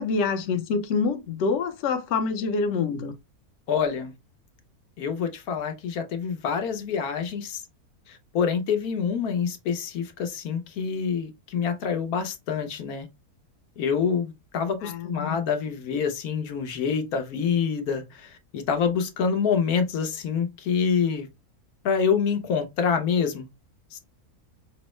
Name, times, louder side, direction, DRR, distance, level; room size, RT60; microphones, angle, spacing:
voice 1, 0.0-3.1 14.8-15.4, left 4 dB, 60° left, 0.9 m, -26 dB
voice 2, 3.7-4.1 5.0-7.6 8.1-13.1 13.8-21.3 21.8-23.5 23.9-24.0, left 6 dB, 75° left, 1.1 m, -26 dB
5.2 x 2.0 x 3.0 m
omnidirectional pair, 1.6 m